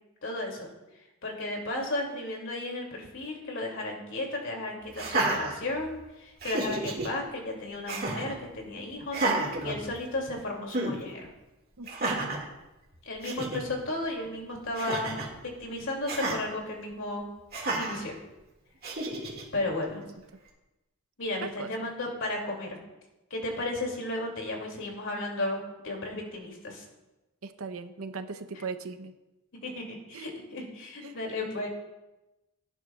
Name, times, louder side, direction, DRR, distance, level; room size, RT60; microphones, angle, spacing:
voice 1, 0.2-0.7 1.2-11.2 13.0-15.2 15.4-17.2 17.8-18.2 19.5-20.0 21.2-22.8 23.3-26.8 29.6-31.7, left 2 dB, 60° left, 1 dB, 2.6 m, -34 dB
Laughter, 4.9-6.0 6.4-7.1 7.9-8.4 9.1-10.3 10.7-11.0 11.9-12.5 13.0-13.1 13.2-13.6 14.7-15.3 16.1-16.4 17.5-18.0 18.8-19.4, right 2 dB, 45° right, 2.1 m, -31 dB
voice 2, 11.8-12.1 21.4-21.9 27.6-29.1 30.1-30.3 31.0-31.2, right 4 dB, 70° right, 9 dB, 0.7 m, -38 dB
17.0 x 9.9 x 2.4 m, 1.0 s
head